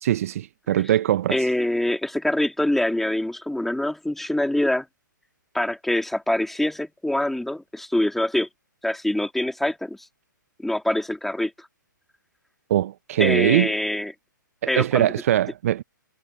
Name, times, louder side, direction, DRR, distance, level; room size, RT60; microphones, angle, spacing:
voice 1, 0.0-1.4 12.7-13.7 14.6-15.8, right 12 dB, 45° right, 1.0 m, -22 dB
voice 2, 1.3-4.8 5.5-8.5 8.8-10.0 10.6-11.5 13.2-14.1 14.7-15.1, left 1 dB, ahead, 3.4 m, -24 dB
figure-of-eight pair, 120°, 11 cm